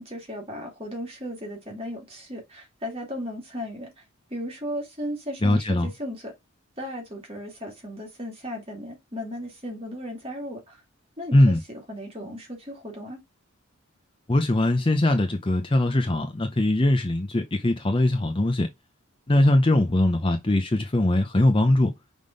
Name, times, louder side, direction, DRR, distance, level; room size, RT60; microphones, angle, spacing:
voice 1, 0.0-4.0 4.3-6.3 6.8-10.8 11.2-13.2, equal, 25° right, 2.4 m, -36 dB
voice 2, 5.4-5.9 11.3-11.6 14.3-18.7 19.3-21.9, left 1 dB, 25° left, 0.6 m, -21 dB
5.7 x 3.5 x 5.1 m
head